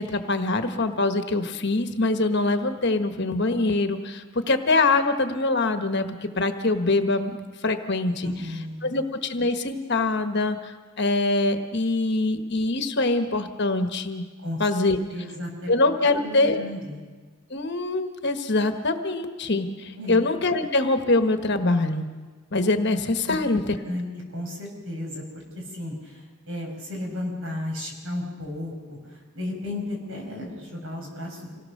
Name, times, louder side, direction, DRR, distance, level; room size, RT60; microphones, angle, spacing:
voice 1, 0.0-7.4 7.6-8.3 8.8-14.2 14.6-15.0 15.7-16.6 17.5-22.1 22.5-23.6, left 2 dB, 50° left, 7 dB, 1.3 m, -24 dB
voice 2, 8.2-8.9 14.4-14.6 15.1-15.7 16.2-17.0 20.0-20.2 23.3-24.0 24.3-25.2 25.6-31.5, left 1 dB, 60° right, 1 dB, 5.6 m, -34 dB
26.5 x 17.5 x 6.6 m, 1.4 s
head